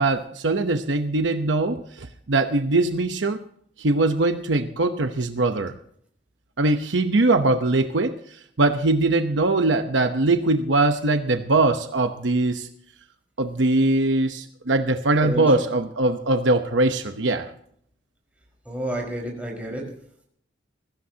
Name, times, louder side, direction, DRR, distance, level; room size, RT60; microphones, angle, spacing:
voice 1, 0.0-3.4 3.8-5.7 6.6-8.1 8.6-12.7 13.4-17.5, right 2 dB, 65° right, 7 dB, 0.9 m, -21 dB
voice 2, 15.2-15.6 18.6-19.9, right 1 dB, 5° right, 0 dB, 4.9 m, -30 dB
21.0 x 15.5 x 2.9 m, 0.66 s
head